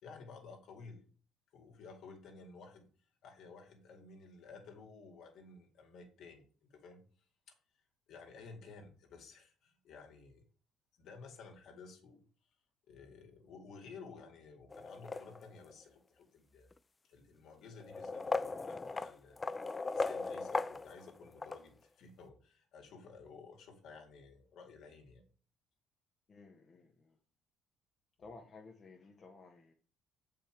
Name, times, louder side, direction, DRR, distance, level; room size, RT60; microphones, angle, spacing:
voice 1, 0.0-1.0 1.5-2.9 3.2-7.0 8.1-10.4 11.0-12.2 12.9-16.7 17.0-19.4 19.9-25.3, left 4 dB, 70° left, 3 dB, 2.3 m, -54 dB
sound 1, 14.7-15.7 16.7-16.8 17.8-21.6, left 3 dB, 25° left, 0.4 m, -38 dB
voice 2, 26.3-27.2 28.2-29.7, left 3 dB, 45° left, 2 dB, 1.4 m, -55 dB
7.3 x 5.4 x 4.6 m, 0.40 s
supercardioid pair, 70°, 0 cm